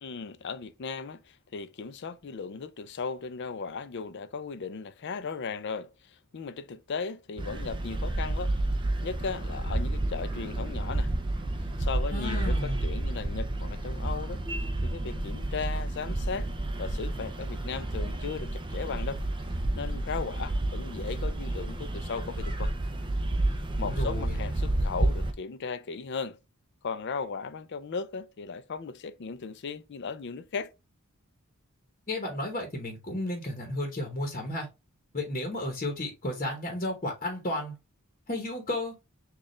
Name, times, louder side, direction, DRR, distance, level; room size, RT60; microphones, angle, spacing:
voice 1, 0.0-8.5 9.0-11.1 11.8-14.4 14.8-16.5 16.8-19.2 19.7-22.7 23.8-26.4 26.8-30.7, left 5 dB, 50° left, 0.4 m, -37 dB
sound 1, 7.4-25.3, right 1 dB, 20° right, 0.5 m, -30 dB
voice 2, 12.1-12.9 23.8-24.4 32.1-34.7 35.1-37.7 38.3-38.9, left 1 dB, 35° left, 0.9 m, -33 dB
6.4 x 2.4 x 3.1 m
head